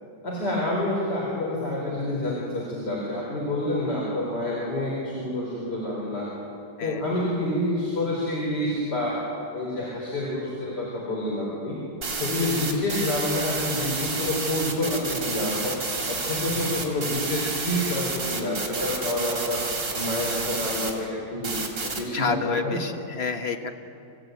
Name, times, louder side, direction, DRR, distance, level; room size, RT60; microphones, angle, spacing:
voice 1, 0.2-6.3 6.8-9.2 9.5-11.8 12.2-15.8 16.1-19.7 19.9-21.6 21.8-22.8, left 1 dB, 70° left, -5 dB, 4.8 m, -28 dB
sound 1, 12.0-20.9 21.4-22.0, right 3 dB, 90° right, 3.7 m, -30 dB
voice 2, 18.8-19.3 22.1-23.7, left 5 dB, 40° left, 5 dB, 1.5 m, -30 dB
27.0 x 15.0 x 9.2 m, 2.8 s
omnidirectional pair, 1.9 m